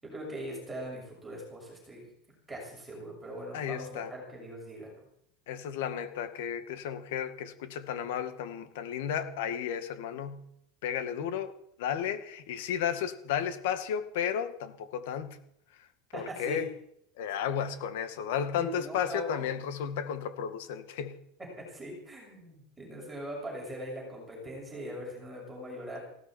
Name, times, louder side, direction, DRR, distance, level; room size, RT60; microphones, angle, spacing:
voice 1, 0.0-2.1 2.5-5.1 16.1-16.6 18.6-19.4 21.7-26.0, equal, 5° right, 6.7 m, -41 dB
voice 2, 3.5-4.1 5.5-10.5 10.8-15.4 15.8-15.9 16.1-16.7 17.2-21.2, left 8 dB, 65° left, 2.1 m, -33 dB
19.5 x 16.5 x 4.6 m
supercardioid pair, 170°, 0 cm